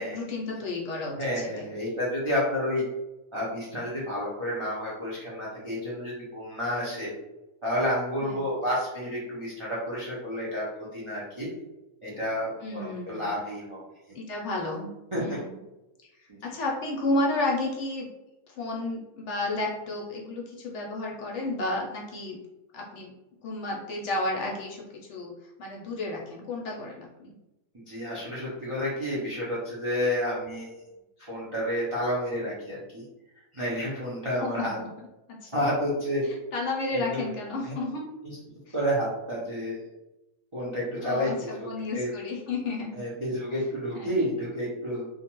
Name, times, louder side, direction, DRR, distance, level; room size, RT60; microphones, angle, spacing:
voice 1, 0.0-1.7 8.2-8.5 12.6-13.3 14.1-14.9 15.2-15.6 16.4-18.1 18.6-22.4 22.7-23.1 23.4-24.8 25.1-25.3 25.6-27.3 34.4-34.9 36.3-38.1 38.7-38.8 41.0-43.0 43.9-44.1, left 2 dB, 65° left, -1 dB, 0.8 m, -32 dB
voice 2, 1.2-2.8 3.3-7.1 7.6-11.5 12.0-13.8 15.1-15.4 16.3-16.4 27.7-30.8 31.2-33.0 33.5-34.8 35.5-36.3 36.9-37.2 37.6-37.7 38.2-38.4 38.7-39.8 40.5-41.6 41.9-42.1 42.9-45.1, equal, 55° right, -7 dB, 0.3 m, -30 dB
2.5 x 2.2 x 2.9 m, 0.98 s
omnidirectional pair, 1.5 m